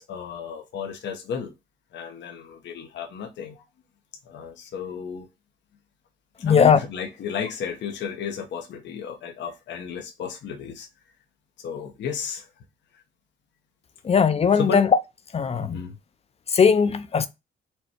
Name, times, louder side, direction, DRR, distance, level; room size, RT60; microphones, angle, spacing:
voice 1, 0.0-1.5 1.9-3.6 4.3-5.3 6.4-10.9 11.6-12.5 14.6-14.8 15.5-16.0, left 6 dB, 65° left, 0.8 m, -33 dB
voice 2, 6.4-6.8 14.0-15.0 15.3-15.8 16.5-17.3, left 6 dB, 30° left, 0.5 m, -19 dB
4.3 x 2.2 x 4.5 m
cardioid pair, 90°, 20 cm